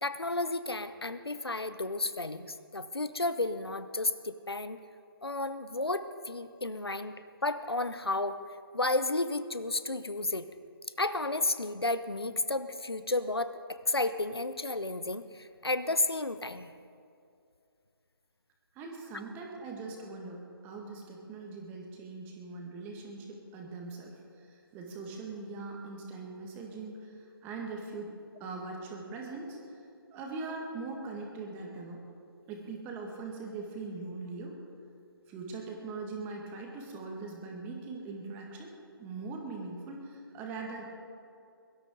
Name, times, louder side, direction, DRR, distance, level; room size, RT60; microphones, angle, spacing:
voice 1, 0.0-4.8 5.2-8.4 8.7-10.5 11.0-16.7, left 2 dB, 85° left, 12 dB, 0.9 m, -32 dB
voice 2, 18.7-28.1 28.4-29.6 30.1-32.0 32.5-34.5 35.3-38.7 39.0-40.9, right 3 dB, 15° right, 1 dB, 1.8 m, -41 dB
23.0 x 12.5 x 3.8 m, 2.4 s
figure-of-eight pair, 145°, 13 cm